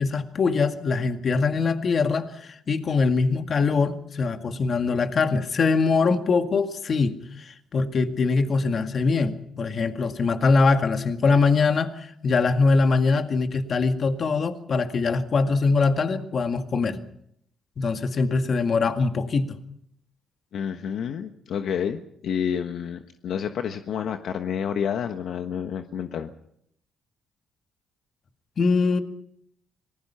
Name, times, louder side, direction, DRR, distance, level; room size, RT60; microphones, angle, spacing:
voice 1, 0.0-17.0 17.8-19.6 28.6-29.0, left 4 dB, 50° left, 7 dB, 2.0 m, -23 dB
voice 2, 20.5-26.3, left 8 dB, 70° left, 6 dB, 1.3 m, -29 dB
26.0 x 19.5 x 5.7 m, 0.73 s
cardioid pair, 90°, 0 cm